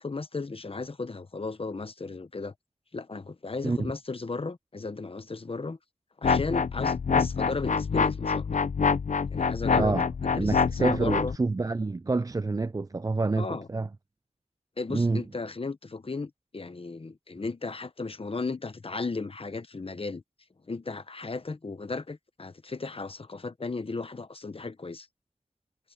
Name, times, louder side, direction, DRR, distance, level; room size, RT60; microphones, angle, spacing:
voice 1, 0.0-2.5 2.9-5.8 6.2-8.5 9.3-11.3 13.4-13.7 14.8-20.2 20.7-25.1, left 3 dB, 50° left, 1.0 m, -35 dB
sound 1, 6.2-11.4, left 5 dB, 85° left, 0.7 m, -26 dB
voice 2, 10.3-13.9 14.9-15.2, right 3 dB, 30° right, 0.4 m, -27 dB
wide cardioid pair, 75°, 13 cm